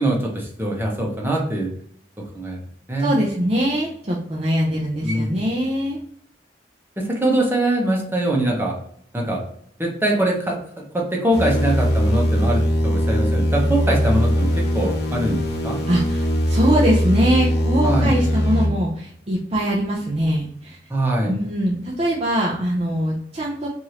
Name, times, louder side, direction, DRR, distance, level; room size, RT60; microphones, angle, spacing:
voice 1, 0.0-1.7 2.3-2.6 2.9-3.1 5.0-5.3 7.0-8.7 9.1-9.4 9.8-15.8 17.8-18.2 20.9-21.3, right 1 dB, 15° right, -1 dB, 0.9 m, -22 dB
voice 2, 3.0-6.0 15.9-20.8 21.3-23.7, equal, 35° right, -4 dB, 0.6 m, -22 dB
sound 1, 11.3-18.7, equal, 65° left, 0.9 m, -20 dB
4.7 x 2.7 x 2.9 m, 0.65 s
head